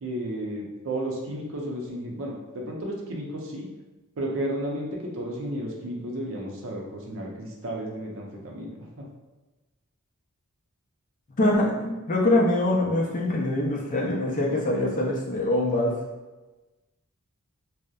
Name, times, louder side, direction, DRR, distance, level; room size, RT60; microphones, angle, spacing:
voice 1, 0.0-3.7 4.2-9.1, right 1 dB, 65° right, -1 dB, 0.5 m, -33 dB
voice 2, 11.4-15.9, left 1 dB, 35° left, -2 dB, 0.4 m, -24 dB
2.7 x 2.0 x 2.3 m, 1.2 s
head